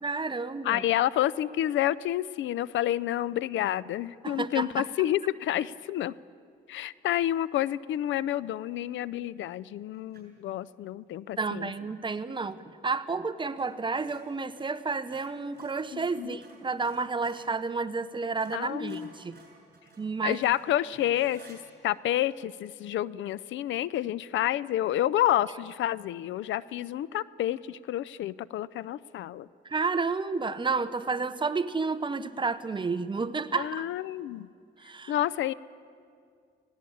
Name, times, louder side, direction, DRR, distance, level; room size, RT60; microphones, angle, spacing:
voice 1, 0.0-0.8 4.2-4.9 11.4-12.6 12.8-19.4 20.0-20.4 29.6-33.9 34.8-35.2, right 4 dB, 25° right, 12 dB, 0.8 m, -31 dB
voice 2, 0.6-6.1 6.7-11.7 15.9-16.4 18.5-19.1 20.2-29.5 33.6-34.5 35.1-35.5, left 13 dB, 70° left, 20 dB, 0.5 m, -29 dB
sound 1, 10.1-10.4 13.5-13.7 14.0-17.5 18.0-18.1 18.3-21.6, right 4 dB, 50° right, 7.3 m, -55 dB
19.0 x 17.0 x 8.5 m, 2.3 s
cardioid pair, 90°, 20 cm